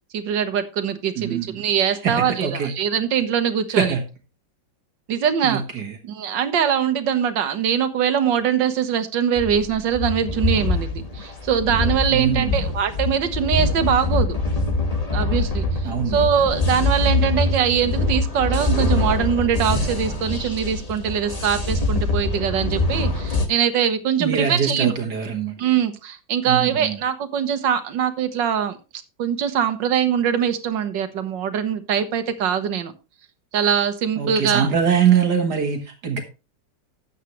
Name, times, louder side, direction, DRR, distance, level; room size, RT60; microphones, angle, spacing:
voice 1, 0.1-4.0 5.1-5.6 6.0-14.4 15.1-15.7 16.1-24.9 25.6-28.8 29.2-32.9 33.5-34.7, right 8 dB, 80° right, 10 dB, 1.8 m, -22 dB
voice 2, 1.2-1.7 2.0-2.7 3.7-4.0 5.4-6.0 12.1-12.6 15.8-16.3 24.2-25.5 26.5-27.0 34.2-36.2, right 7 dB, 65° right, 5 dB, 1.9 m, -23 dB
sound 1, 9.4-23.4, left 2 dB, 20° left, 1.4 m, -24 dB
13.0 x 8.3 x 3.1 m, 0.30 s
omnidirectional pair, 1.9 m